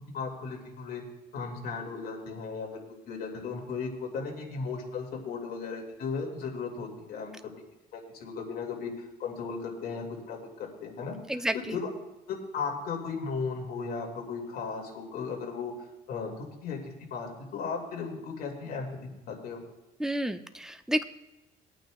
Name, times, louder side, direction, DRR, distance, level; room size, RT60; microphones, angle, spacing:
voice 1, 0.1-1.0 1.3-2.7 3.1-7.3 7.9-8.9 9.2-10.4 10.8-11.2 11.5-11.8 12.3-15.7 16.1-16.8 17.1-18.9 19.3-19.6, left 5 dB, 65° left, 0 dB, 2.5 m, -36 dB
voice 2, 11.3-11.8 20.0-21.0, right 1 dB, 5° right, 9 dB, 0.6 m, -30 dB
21.5 x 9.0 x 2.4 m, 0.97 s
cardioid pair, 110°, 17 cm